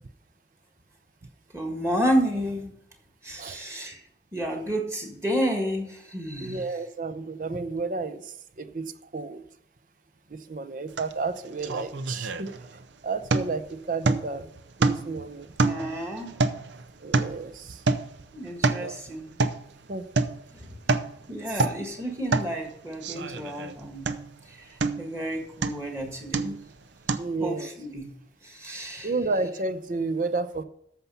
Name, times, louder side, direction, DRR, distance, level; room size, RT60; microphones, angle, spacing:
voice 1, 1.5-2.7 3.2-4.0 4.3-6.7 15.6-16.4 18.3-19.3 20.5-20.7 21.3-24.1 24.5-26.6 27.4-28.1 28.4-29.1, equal, 15° right, 2 dB, 1.6 m, -31 dB
voice 2, 6.4-9.4 10.3-12.5 13.0-14.5 14.8-15.5 17.0-17.8 18.8-19.0 19.9-20.0 21.5-21.7 27.2-27.7 29.0-30.6, right 3 dB, 50° right, 11 dB, 0.6 m, -31 dB
sound 1, 11.0-11.1 11.4-12.8 13.3-13.7 14.0-14.4 14.8-15.2 15.6-17.5 17.9-18.2 18.5-18.9 19.4-19.7 20.2-20.4 20.7-21.1 21.5-21.9 22.3-22.5 23.0-23.7 24.1-24.4 24.8-25.2 25.6-25.9 26.3-26.7 27.1-27.2, right 3 dB, 85° right, 0.7 m, -27 dB
14.0 x 5.8 x 5.6 m, 0.72 s
head